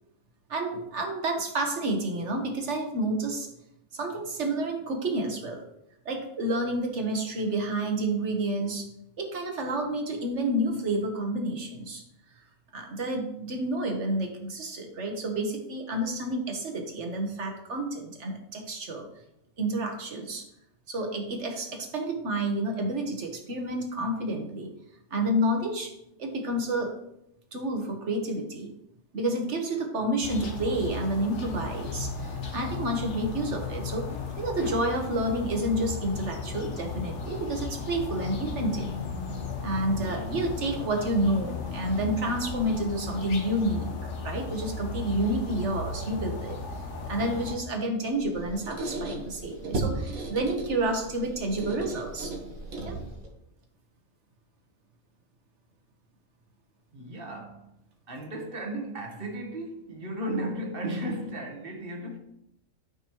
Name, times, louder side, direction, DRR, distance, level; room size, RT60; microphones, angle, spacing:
voice 1, 0.5-3.5 3.9-5.6 6.0-8.9 9.2-12.0 12.7-19.0 19.6-20.4 20.9-24.7 25.1-25.9 26.2-26.9 27.5-28.7 29.1-34.1 34.4-38.9 39.6-46.6 47.1-52.3 52.8-53.0, right 1 dB, 60° right, 1.6 m, -29 dB
sound 1, 30.2-47.5, left 4 dB, 60° left, 1.4 m, -35 dB
Squeak, 48.1-53.3, right 2 dB, 90° right, 1.7 m, -35 dB
voice 2, 56.9-57.8 58.1-62.2, right 1 dB, 45° right, 1.4 m, -35 dB
12.0 x 5.4 x 3.0 m
omnidirectional pair, 1.4 m